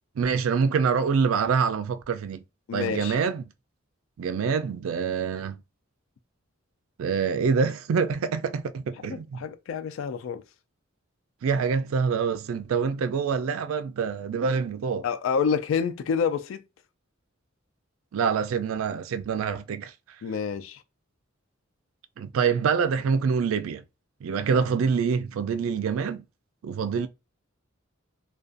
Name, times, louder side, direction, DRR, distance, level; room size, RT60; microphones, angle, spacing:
voice 1, 0.2-2.4 2.7-3.5 4.2-5.6 7.0-9.4 11.4-15.1 18.1-19.9 22.2-23.8 24.2-26.2 26.6-27.1, right 6 dB, 80° right, 0.4 m, -26 dB
voice 2, 2.7-3.2 9.0-10.4 15.0-16.6 20.2-20.8, left 6 dB, 70° left, 0.3 m, -28 dB
2.4 x 2.2 x 2.5 m
head